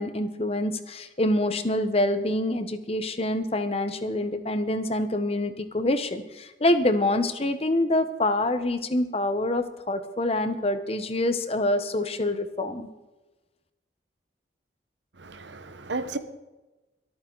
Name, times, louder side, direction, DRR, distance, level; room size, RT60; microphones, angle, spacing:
voice 1, 0.0-12.9, left 1 dB, 35° left, 1.0 m, -26 dB
voice 2, 15.2-16.2, right 3 dB, 80° right, 1.2 m, -33 dB
23.5 x 9.0 x 3.9 m
head